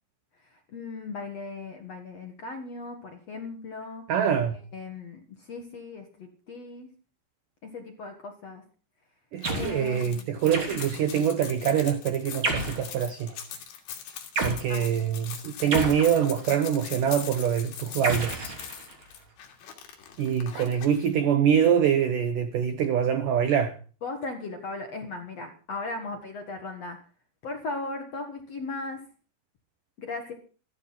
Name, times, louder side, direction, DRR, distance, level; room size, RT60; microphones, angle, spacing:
voice 1, 0.4-4.0 4.7-6.9 7.6-8.6 9.6-10.2 14.7-14.8 24.0-27.0 27.4-29.0 30.0-30.3, left 3 dB, 55° left, 1.9 m, -37 dB
voice 2, 4.1-4.6 9.3-13.4 14.4-18.5 20.2-23.8, right 8 dB, 80° right, 1.9 m, -25 dB
sound 1, 9.4-21.1, left 8 dB, 80° left, 5.1 m, -41 dB
sound 2, 9.4-9.8 10.5-11.1 12.4-12.9 14.4-14.6 15.7-16.6 18.0-19.1, right 2 dB, 30° right, 3.3 m, -31 dB
14.0 x 14.0 x 5.8 m
omnidirectional pair, 5.4 m